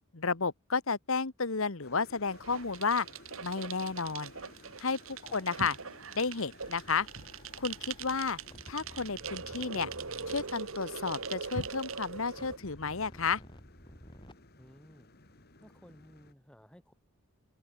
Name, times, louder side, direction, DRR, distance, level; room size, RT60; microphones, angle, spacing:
voice 1, 0.1-3.1 3.4-4.3 4.8-5.0 5.3-5.8 6.1-7.1 7.6-8.4 8.7-9.9 10.3-13.4, left 4 dB, 65° left, 1.3 m, -32 dB
sound 1, 1.8-16.3, left 2 dB, 45° left, 2.3 m, -57 dB
sound 2, 2.3-12.6, right 5 dB, 65° right, 1.7 m, -42 dB
sound 3, 6.6-14.3, equal, 20° left, 7.4 m, -54 dB
voice 2, 14.6-15.1 15.6-16.9, equal, 5° left, 3.7 m, -56 dB
open air
head